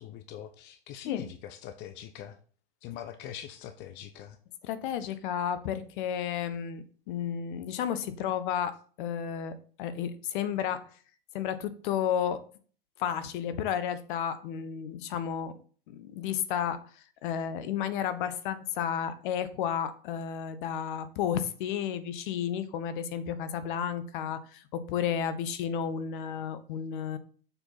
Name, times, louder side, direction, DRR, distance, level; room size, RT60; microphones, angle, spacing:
voice 1, 0.0-2.4 2.8-4.4, left 10 dB, 35° left, 9 dB, 0.7 m, -42 dB
voice 2, 4.6-10.9 11.3-12.4 13.0-15.6 15.9-16.8 17.2-27.2, left 8 dB, 55° left, 13 dB, 1.0 m, -32 dB
6.8 x 4.5 x 5.7 m, 0.44 s
hypercardioid pair, 95°, 30 cm